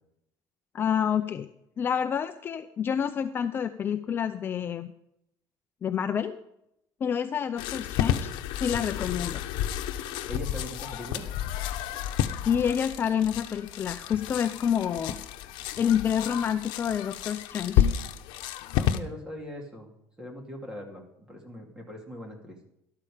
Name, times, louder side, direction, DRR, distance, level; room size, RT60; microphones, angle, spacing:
voice 1, 0.7-1.5 1.8-4.9 5.8-6.4 7.0-8.3 8.6-9.4 12.5-15.2 15.8-17.9, left 8 dB, 30° left, 9 dB, 0.5 m, -28 dB
sound 1, 7.6-19.0, left 11 dB, 80° left, 0.9 m, -31 dB
voice 2, 10.3-11.2 18.7-19.9 20.2-22.6, left 1 dB, 10° right, 1 dB, 2.6 m, -40 dB
13.0 x 12.0 x 5.0 m, 0.79 s
cardioid pair, 170°, 8 cm